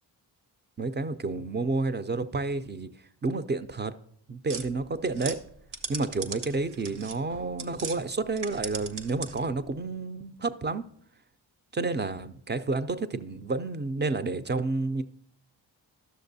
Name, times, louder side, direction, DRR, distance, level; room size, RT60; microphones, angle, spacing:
voice 1, 0.8-2.9 3.2-3.9 4.3-5.4 5.9-10.8 11.7-15.0, right 3 dB, 25° right, 10 dB, 0.4 m, -30 dB
sound 1, 4.5-8.0 8.3-9.6, right 5 dB, 85° right, 0.9 m, -39 dB
11.0 x 6.5 x 2.6 m, 0.65 s
supercardioid pair, 45°, 50 cm